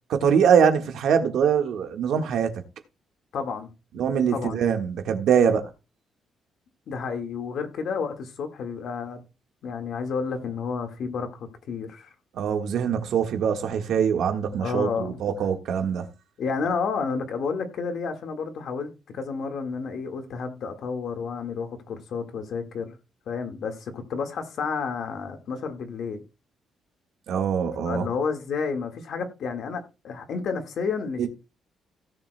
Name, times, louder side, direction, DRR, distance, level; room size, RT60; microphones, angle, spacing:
voice 1, 0.1-2.5 3.9-5.7 12.3-16.1 27.3-28.1 31.2-31.3, right 7 dB, 65° right, 1.5 m, -23 dB
voice 2, 3.3-3.7 4.3-4.6 6.9-9.2 9.6-12.1 14.6-15.2 16.4-23.0 23.3-26.2 27.8-31.3, left 5 dB, 55° left, 1.7 m, -31 dB
17.0 x 7.5 x 2.2 m
cardioid pair, 170°, 0 cm